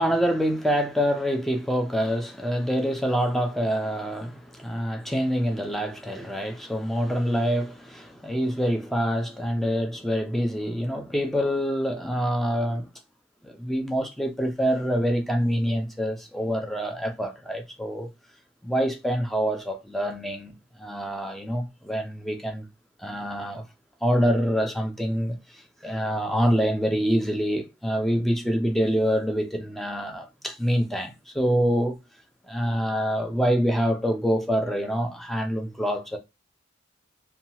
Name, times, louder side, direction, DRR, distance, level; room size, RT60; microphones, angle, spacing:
voice 1, 0.0-12.9 13.4-18.1 18.6-20.5 20.8-22.6 23.0-23.6 24.0-32.0 32.5-36.2, equal, ahead, 0.4 m, -26 dB
2.8 x 2.2 x 2.8 m
head